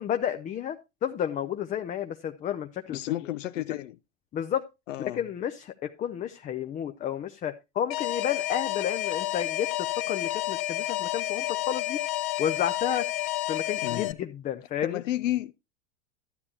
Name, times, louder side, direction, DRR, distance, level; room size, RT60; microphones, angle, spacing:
voice 1, 0.0-3.0 4.3-4.6 5.1-12.0 12.4-13.1 13.5-15.0, left 9 dB, 20° left, 0.4 m, -31 dB
voice 2, 2.9-4.0 4.9-5.2 13.8-14.2 14.8-15.5, left 14 dB, 80° left, 0.5 m, -31 dB
Alarm, 7.9-14.1, left 15 dB, 45° left, 0.8 m, -30 dB
12.5 x 8.5 x 2.7 m
hypercardioid pair, 100°, 37 cm